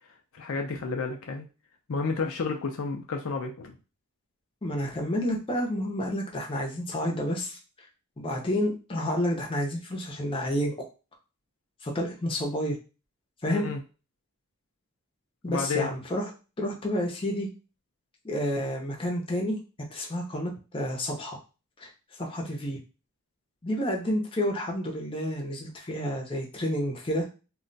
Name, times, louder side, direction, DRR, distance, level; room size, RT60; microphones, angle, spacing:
voice 1, 0.3-1.5 1.9-3.7 13.5-13.8 15.5-15.9, left 4 dB, 65° left, 3 dB, 0.5 m, -31 dB
voice 2, 4.6-7.6 8.2-10.7 11.8-12.8 13.4-13.7 15.4-16.3 16.6-17.5 18.2-19.6 19.9-21.4 21.8-21.9 22.2-22.8 23.6-27.3, equal, 25° left, -1 dB, 0.7 m, -30 dB
2.4 x 2.2 x 3.8 m, 0.32 s
head